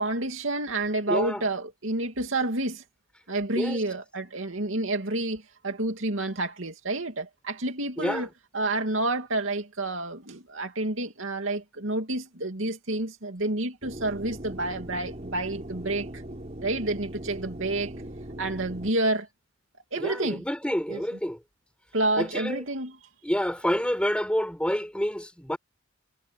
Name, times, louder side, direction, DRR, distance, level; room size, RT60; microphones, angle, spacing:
voice 1, 0.0-2.8 3.3-8.3 8.5-16.2 16.6-17.9 18.4-19.3 19.9-20.4 20.9-21.0 21.9-23.0, right 2 dB, 75° right, 2.7 m, -29 dB
voice 2, 1.1-1.4 3.6-3.8 8.0-8.3 20.0-21.4 22.2-22.6 23.2-25.6, equal, 5° left, 5.8 m, -28 dB
sound 1, 13.8-18.9, right 1 dB, 35° right, 4.6 m, -40 dB
head